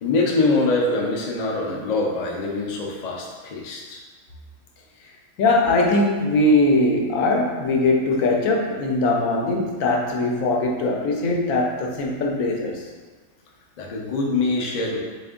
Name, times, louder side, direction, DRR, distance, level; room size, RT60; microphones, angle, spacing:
voice 1, 0.0-4.0 13.8-15.0, left 3 dB, 55° left, -1 dB, 0.5 m, -24 dB
voice 2, 5.4-12.8, left 2 dB, 85° left, 0 dB, 1.0 m, -21 dB
3.3 x 2.6 x 3.6 m, 1.4 s
omnidirectional pair, 1.3 m